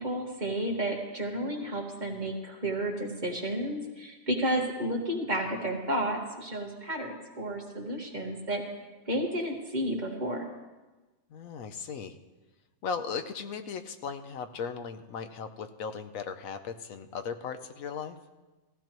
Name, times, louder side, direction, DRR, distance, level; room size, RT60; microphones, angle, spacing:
voice 1, 0.0-8.6 9.1-10.5, right 1 dB, 35° right, 0 dB, 1.8 m, -32 dB
voice 2, 11.3-12.2 12.8-18.2, left 6 dB, 80° left, 9 dB, 1.2 m, -37 dB
17.5 x 15.0 x 3.0 m, 1.2 s
omnidirectional pair, 1.4 m